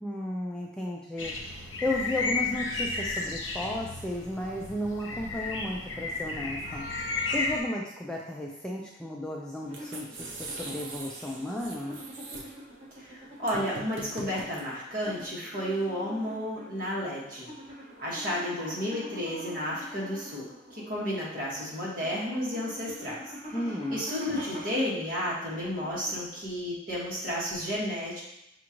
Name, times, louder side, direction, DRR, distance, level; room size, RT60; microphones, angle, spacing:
voice 1, 0.0-1.3 1.8-6.9 7.3-12.0 23.5-24.0, left 1 dB, 5° left, -3 dB, 0.3 m, -34 dB
sound 1, 1.2-7.6, left 3 dB, 85° left, 0.8 m, -33 dB
sound 2, 9.6-26.5, equal, 30° right, 1.5 m, -45 dB
sound 3, 9.6-15.2, right 3 dB, 75° right, 0.6 m, -43 dB
voice 2, 13.0-17.5 18.0-20.4 20.7-23.2 23.9-28.2, equal, 50° right, -7 dB, 1.6 m, -32 dB
6.0 x 2.5 x 3.0 m, 0.86 s
head